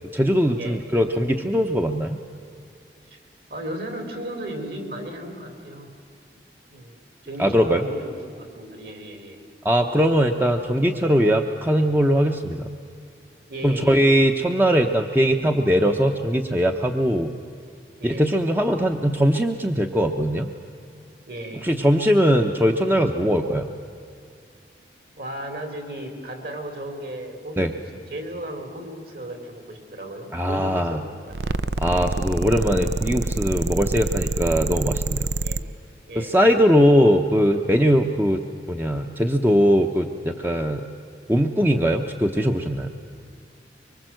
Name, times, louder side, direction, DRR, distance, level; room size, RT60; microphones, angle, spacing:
voice 1, 0.1-2.2 7.4-7.9 9.6-12.7 13.6-17.3 18.0-20.5 21.6-23.7 27.6-27.7 30.3-31.0 31.8-35.3 36.1-38.4 38.7-40.8 41.3-42.9, equal, 10° right, 4 dB, 0.8 m, -20 dB
voice 2, 3.5-5.9 6.7-6.9 7.2-9.4 13.5-14.2 18.0-18.3 21.3-21.7 25.2-31.6 31.9-32.1 35.4-35.6 36.1-36.4, right 1 dB, 60° right, 5 dB, 4.1 m, -35 dB
sound 1, 31.3-35.6, right 3 dB, 75° right, 0.6 m, -26 dB
24.5 x 24.5 x 7.8 m, 2.3 s
head